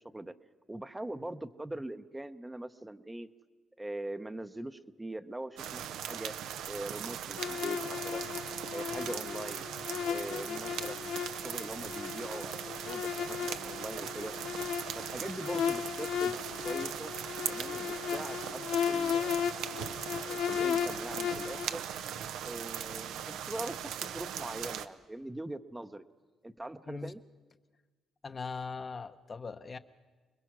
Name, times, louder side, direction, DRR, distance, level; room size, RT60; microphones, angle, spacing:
voice 1, 0.7-3.3 3.8-6.3 6.7-8.3 8.7-9.7 10.0-14.3 15.0-16.4 16.6-17.1 17.5-18.6 18.9-19.4 20.2-21.9 22.4-26.0 26.4-27.2, right 1 dB, 10° right, 9 dB, 0.7 m, -42 dB
sound 1, 5.6-24.9, right 9 dB, 85° right, 0.7 m, -39 dB
sound 2, 7.4-21.7, left 8 dB, 80° left, 0.7 m, -35 dB
voice 2, 28.2-29.8, left 4 dB, 35° left, 9 dB, 0.8 m, -40 dB
26.5 x 20.5 x 6.1 m, 1.3 s
cardioid pair, 90°, 0 cm